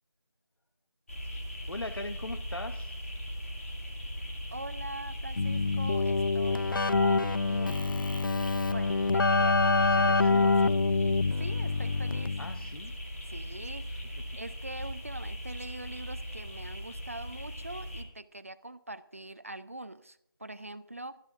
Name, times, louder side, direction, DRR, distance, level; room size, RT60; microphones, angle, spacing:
sound 1, 1.1-18.0, equal, 35° left, 2.4 m, -39 dB
voice 1, 1.7-3.0 9.8-10.8 12.4-12.9 13.9-14.0, left 2 dB, 85° left, 8 dB, 1.0 m, -41 dB
voice 2, 4.5-8.3 8.6-10.5 11.4-12.4 13.3-13.9 14.4-21.2, right 2 dB, 40° right, 14 dB, 0.5 m, -43 dB
Keyboard (musical), 5.4-12.7, left 3 dB, 65° left, 0.4 m, -26 dB
20.5 x 13.0 x 2.6 m, 0.77 s
figure-of-eight pair, 175°, 12 cm